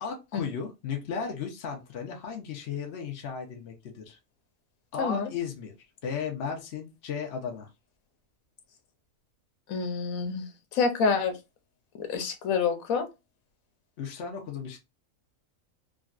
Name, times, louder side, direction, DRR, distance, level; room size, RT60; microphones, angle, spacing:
voice 1, 0.0-4.2 4.9-5.7 6.0-7.7 14.0-14.8, left 6 dB, 60° left, 1.0 m, -35 dB
voice 2, 5.0-5.3 9.7-11.3 12.0-13.1, left 5 dB, 90° left, 1.2 m, -27 dB
3.7 x 2.2 x 2.4 m
omnidirectional pair, 1.4 m